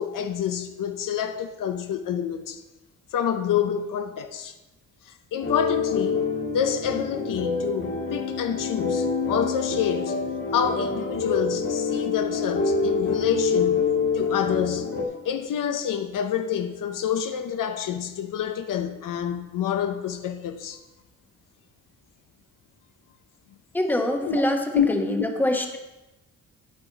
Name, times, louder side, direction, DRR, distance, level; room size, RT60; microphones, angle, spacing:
voice 1, 0.0-2.6 3.1-4.5 5.1-6.3 6.5-10.2 10.5-13.8 14.1-14.9 15.2-20.8 24.2-24.4 24.7-24.9, left 9 dB, 75° left, 0.7 m, -27 dB
sound 1, 5.4-15.0, left 4 dB, 45° left, 1.8 m, -26 dB
voice 2, 23.7-24.6 24.9-25.8, left 1 dB, 5° left, 1.0 m, -24 dB
9.4 x 8.4 x 4.0 m
cardioid pair, 130°, 32 cm